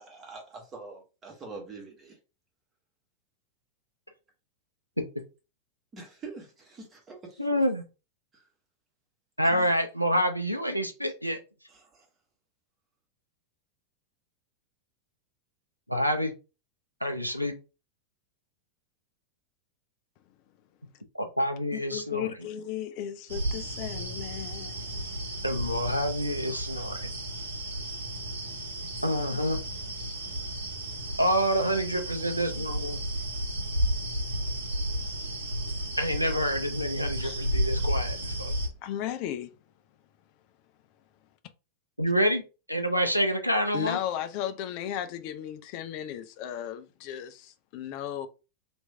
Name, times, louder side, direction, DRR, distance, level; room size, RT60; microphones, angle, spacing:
voice 1, 0.0-2.1 5.9-7.6 9.4-9.7 11.9-12.0, right 3 dB, 20° right, 1.4 m, -44 dB
voice 2, 7.4-7.8 9.4-11.4 15.9-16.3 17.0-17.5 21.1-22.3 25.4-27.1 29.0-29.6 31.2-33.0 36.0-38.5 42.0-44.0, equal, 90° right, 0.6 m, -27 dB
voice 3, 21.7-25.4 37.2-37.4 38.8-39.5 43.7-48.3, left 10 dB, 45° left, 0.5 m, -35 dB
sound 1, 23.3-38.7, right 1 dB, 70° right, 1.0 m, -33 dB
3.0 x 2.6 x 3.2 m
figure-of-eight pair, 90°, 0 cm